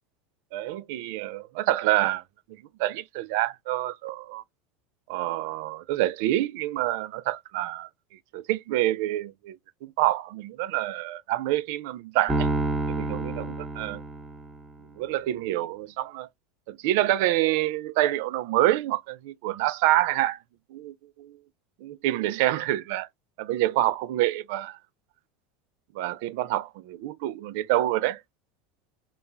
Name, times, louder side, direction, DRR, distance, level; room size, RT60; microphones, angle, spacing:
voice 1, 0.5-2.2 2.8-4.4 5.1-7.9 8.3-9.6 9.8-12.5 12.9-14.0 15.0-16.3 16.7-20.4 20.7-21.4 21.8-23.1 23.4-24.8 25.9-28.2, right 15 dB, 70° right, 0.3 m, -27 dB
Piano, 12.3-14.7, right 2 dB, 15° right, 1.0 m, -29 dB
2.9 x 2.2 x 2.3 m
hypercardioid pair, 90°, 0 cm